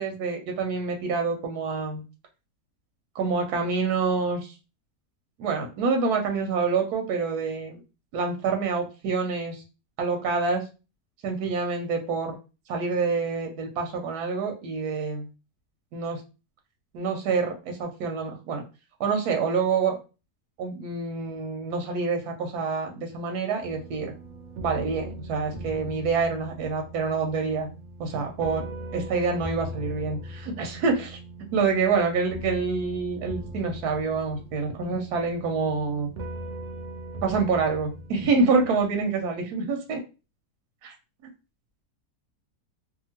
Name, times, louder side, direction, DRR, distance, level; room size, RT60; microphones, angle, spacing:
voice 1, 0.0-2.0 3.1-4.5 5.4-7.8 8.1-9.6 10.0-10.6 11.2-12.4 12.7-15.3 15.9-16.2 16.9-18.6 19.0-20.0 20.6-24.1 24.6-27.7 28.0-28.6 28.9-31.2 31.5-36.1 37.2-40.0 40.8-40.9, right 4 dB, 90° right, 3 dB, 1.1 m, -27 dB
sound 1, 23.6-39.1, right 1 dB, 65° right, 0.7 m, -40 dB
2.7 x 2.4 x 2.8 m, 0.31 s
omnidirectional pair, 1.6 m